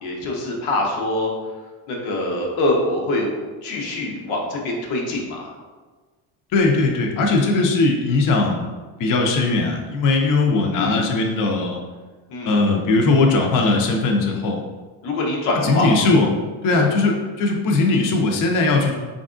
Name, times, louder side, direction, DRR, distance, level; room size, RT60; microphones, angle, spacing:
voice 1, 0.0-1.3 1.9-3.3 3.6-5.5 10.7-11.0 12.3-12.6 15.0-15.9 16.7-16.9, left 2 dB, 85° left, -1 dB, 0.8 m, -24 dB
voice 2, 6.5-8.7 9.0-11.8 12.4-14.6 15.5-16.3 16.6-18.9, left 3 dB, 40° left, 2 dB, 0.6 m, -19 dB
3.4 x 2.5 x 2.4 m, 1.3 s
supercardioid pair, 70°, 49 cm